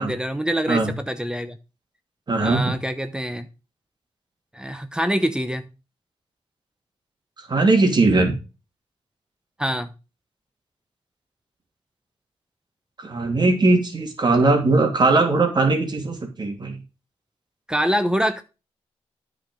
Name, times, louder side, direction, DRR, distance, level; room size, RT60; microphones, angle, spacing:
voice 1, 0.0-1.6 2.4-3.5 4.5-5.7 9.6-9.9 17.7-18.4, equal, 5° right, 10 dB, 0.9 m, -25 dB
voice 2, 2.3-2.7 7.5-8.3 13.0-16.8, right 3 dB, 40° right, 4 dB, 2.8 m, -19 dB
9.1 x 5.1 x 5.3 m, 0.31 s
cardioid pair, 65°, 11 cm